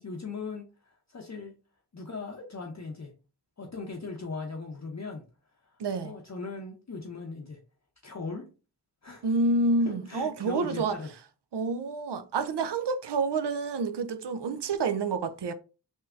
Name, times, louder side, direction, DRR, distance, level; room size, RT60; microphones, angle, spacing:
voice 1, 0.0-1.5 1.9-3.1 3.6-5.2 5.6-7.6 8.0-8.4 9.0-9.3 9.8-11.1, left 4 dB, 40° left, 0.6 m, -39 dB
voice 2, 5.8-6.1 9.2-11.0 11.5-15.5, right 3 dB, 80° right, 0.5 m, -28 dB
3.5 x 2.6 x 2.3 m
wide cardioid pair, 40°, 41 cm